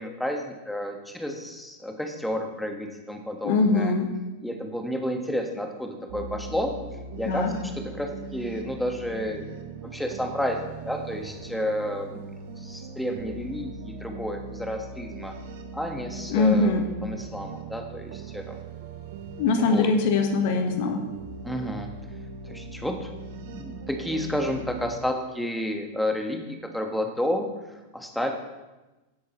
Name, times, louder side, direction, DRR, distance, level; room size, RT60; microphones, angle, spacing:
voice 1, 0.0-3.9 4.4-6.7 7.2-10.6 10.8-12.3 12.6-15.3 15.7-18.6 19.6-19.9 21.4-21.9 22.4-23.1 23.3-27.5 27.9-28.3, left 1 dB, 5° left, 4 dB, 1.5 m, -31 dB
voice 2, 3.4-4.1 7.2-7.5 16.3-16.9 19.4-21.0, left 3 dB, 50° left, 5 dB, 1.3 m, -22 dB
sound 1, 6.1-25.0, right 4 dB, 50° right, 1.1 m, -40 dB
17.5 x 8.1 x 3.1 m, 1.1 s
figure-of-eight pair, 90°, 0 cm